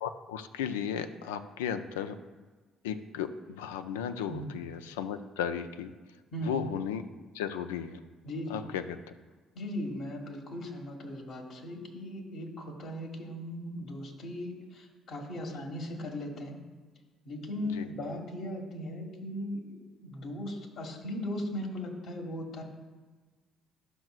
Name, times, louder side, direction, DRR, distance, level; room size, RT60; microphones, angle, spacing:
voice 1, 0.0-2.2 2.8-5.9 6.4-7.1 7.3-8.0 8.5-9.0 17.7-17.9, left 8 dB, 85° left, 9 dB, 0.4 m, -35 dB
voice 2, 4.3-4.6 6.3-6.5 8.2-8.6 9.5-16.6 17.2-22.6, left 1 dB, 60° left, 1 dB, 1.6 m, -38 dB
12.0 x 6.2 x 2.4 m, 1.3 s
hypercardioid pair, 55°, 0 cm